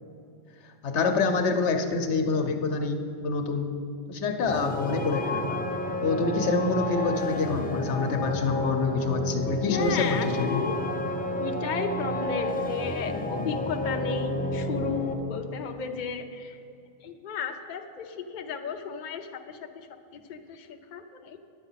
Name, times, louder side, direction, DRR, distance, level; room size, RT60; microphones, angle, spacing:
voice 1, 0.8-3.8 4.1-5.6 6.0-10.7, left 4 dB, 90° left, 6 dB, 1.2 m, -27 dB
sound 1, 4.5-15.1, left 1 dB, 10° left, 0.6 m, -30 dB
voice 2, 9.5-10.7 11.4-16.6 17.0-21.4, left 5 dB, 50° left, 5 dB, 0.7 m, -34 dB
10.5 x 8.1 x 5.7 m, 2.5 s
omnidirectional pair, 1.1 m